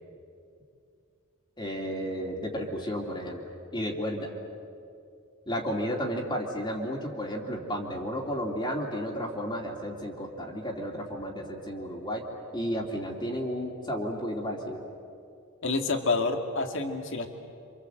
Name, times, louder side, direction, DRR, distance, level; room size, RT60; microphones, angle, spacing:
voice 1, 1.6-3.4 3.7-4.3 5.5-12.3 12.5-14.8, equal, 20° left, -1 dB, 2.9 m, -32 dB
voice 2, 15.6-17.3, left 3 dB, 60° left, 5 dB, 2.3 m, -28 dB
28.0 x 26.5 x 7.9 m, 2.5 s
head